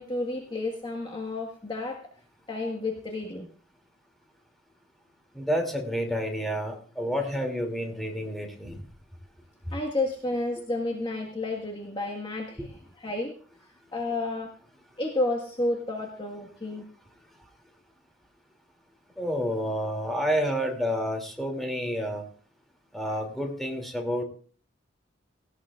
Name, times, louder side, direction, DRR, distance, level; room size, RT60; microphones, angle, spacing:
voice 1, 0.0-2.0 2.5-3.5 9.7-13.3 13.9-14.5 15.0-16.9, left 2 dB, 25° left, 0 dB, 1.6 m, -31 dB
voice 2, 5.3-8.8 9.7-9.8 12.6-12.7 19.2-22.2 22.9-24.2, equal, ahead, 2 dB, 2.8 m, -29 dB
18.0 x 16.5 x 2.5 m, 0.44 s
head